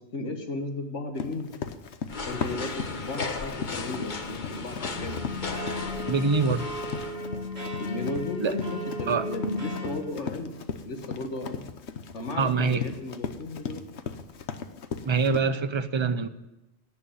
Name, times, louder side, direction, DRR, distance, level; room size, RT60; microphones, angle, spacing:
voice 1, 0.0-1.5 2.3-5.2 7.8-10.5 10.9-11.7 12.1-13.8, left 2 dB, 85° left, 4 dB, 1.8 m, -34 dB
Run, 1.1-15.4, left 6 dB, 70° left, 1.2 m, -37 dB
sound 1, 2.1-7.2, left 4 dB, 45° left, 1.2 m, -35 dB
sound 2, 4.9-9.9, left 1 dB, 65° right, 3.3 m, -35 dB
voice 2, 6.1-6.7 8.4-8.5 9.1-9.3 12.4-12.8 15.0-16.3, right 4 dB, 30° right, 11 dB, 0.6 m, -24 dB
17.5 x 6.6 x 9.2 m, 0.99 s
omnidirectional pair, 1.2 m